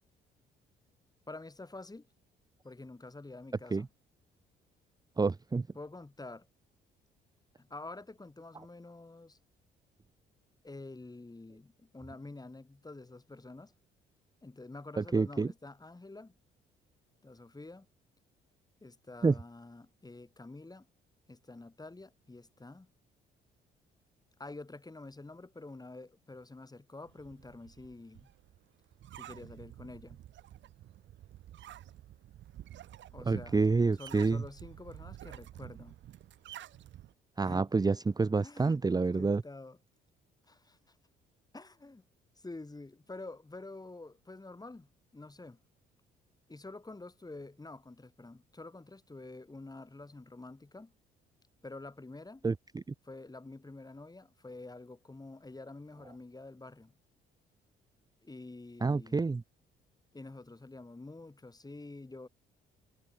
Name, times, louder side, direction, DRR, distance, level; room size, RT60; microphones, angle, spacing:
voice 1, 1.3-2.1 2.6-3.9 5.8-6.5 7.6-9.4 10.6-13.7 14.4-16.3 17.2-17.9 18.8-20.9 21.3-22.9 24.4-28.3 29.1-30.2 33.1-33.6 34.0-36.0 37.4-37.7 38.4-39.8 40.5-41.0 41.5-42.0 42.4-45.6 46.5-50.9 51.6-52.5 53.0-56.9 58.2-59.4 60.1-62.3, left 2 dB, 20° left, 7.7 m, -48 dB
voice 2, 5.2-5.7 15.0-15.5 19.2-19.4 33.3-34.4 37.4-39.4 52.4-52.8 58.8-59.4, right 4 dB, 20° right, 0.7 m, -28 dB
sound 1, 27.1-37.1, right 12 dB, 70° right, 2.5 m, -50 dB
supercardioid pair, 60°, 20 cm